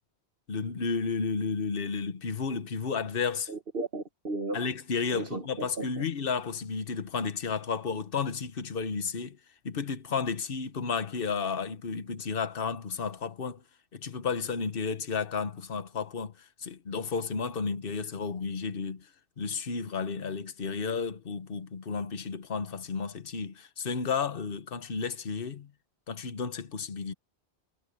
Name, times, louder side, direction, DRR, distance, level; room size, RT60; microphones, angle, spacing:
voice 1, 0.5-3.5 4.5-9.4 9.6-13.6 13.9-16.3 16.6-19.1 19.4-25.7 26.1-27.1, left 5 dB, 55° left, 1.3 m, -32 dB
voice 2, 3.5-4.6 5.1-6.0, right 2 dB, 55° right, 1.7 m, -35 dB
omnidirectional pair, 1.1 m